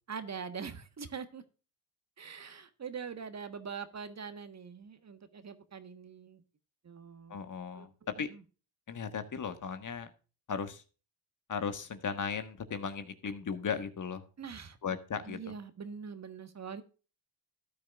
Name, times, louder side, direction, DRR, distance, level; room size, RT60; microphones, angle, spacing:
voice 1, 0.1-1.4 2.2-6.4 6.8-7.4 7.7-7.9 8.3-8.4 14.4-14.8 15.3-16.8, right 6 dB, 35° right, 10 dB, 1.4 m, -43 dB
voice 2, 7.3-8.3 8.9-10.1 10.5-10.8 11.5-14.2 14.8-15.4, left 6 dB, 45° left, 10 dB, 1.5 m, -36 dB
13.5 x 9.4 x 2.4 m, 0.34 s
supercardioid pair, 65°, 44 cm